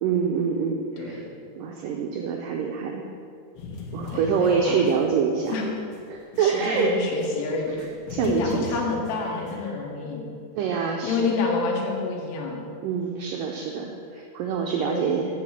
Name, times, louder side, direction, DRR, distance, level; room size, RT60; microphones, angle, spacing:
voice 1, 0.0-1.2 1.6-3.1 3.9-5.5 6.1-6.9 8.1-8.7 9.3-9.4 9.6-9.8 10.5-11.3 12.8-15.4, right 6 dB, 85° right, 1 dB, 1.9 m, -26 dB
voice 2, 1.0-1.3 4.1-4.8 5.5-5.6 6.4-7.8 8.2-10.2 11.0-12.6 14.8-15.1, left 4 dB, 85° left, -1 dB, 3.5 m, -28 dB
sound 1, 3.6-7.3 7.7-9.6, left 4 dB, 70° left, 3.3 m, -39 dB
9.1 x 5.8 x 7.3 m, 2.4 s
omnidirectional pair, 4.7 m